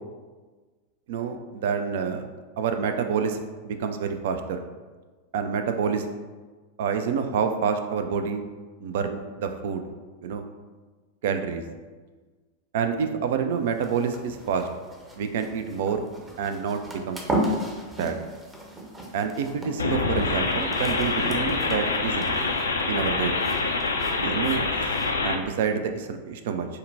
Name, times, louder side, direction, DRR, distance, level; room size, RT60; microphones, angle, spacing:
voice 1, 1.1-2.3 2.6-3.4 3.6-4.6 5.3-6.1 6.8-8.4 8.8-9.8 10.2-10.5 11.2-11.6 12.7-14.7 15.2-16.1 16.4-17.2 18.0-18.2 19.1-22.4 22.9-23.5 24.1-25.0 25.2-26.7, right 6 dB, 55° right, 7 dB, 0.3 m, -28 dB
sound 1, 13.5-25.1, right 1 dB, 15° right, 0.7 m, -36 dB
sound 2, 19.8-25.4, left 3 dB, 75° left, 0.4 m, -26 dB
6.4 x 2.1 x 2.6 m, 1.4 s
figure-of-eight pair, 90°, 0 cm